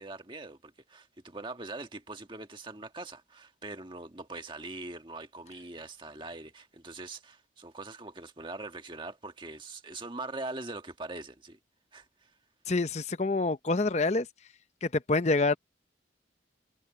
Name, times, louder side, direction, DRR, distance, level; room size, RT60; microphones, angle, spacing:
voice 1, 0.0-11.6 11.9-12.3, right 2 dB, 25° right, 1.6 m, -42 dB
voice 2, 12.7-14.3 14.8-15.6, left 3 dB, 35° left, 0.7 m, -27 dB
head